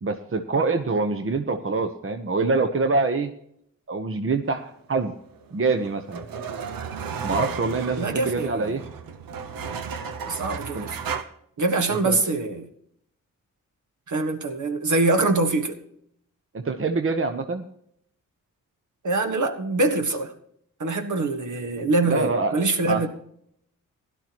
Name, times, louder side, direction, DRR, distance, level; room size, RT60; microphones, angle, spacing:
voice 1, 0.0-3.3 3.9-5.1 5.5-6.2 7.2-8.8 10.7-10.9 11.9-12.2 16.5-17.6 22.0-22.6 22.9-23.1, right 3 dB, 40° right, 1.0 m, -25 dB
sound 1, 5.3-11.2, right 6 dB, 85° right, 1.0 m, -34 dB
voice 2, 8.0-8.8 10.3-11.0 11.6-12.7 14.1-15.8 19.0-20.3 20.8-23.1, right 2 dB, 60° right, 1.6 m, -24 dB
16.0 x 11.5 x 3.0 m
cardioid pair, 60°, 33 cm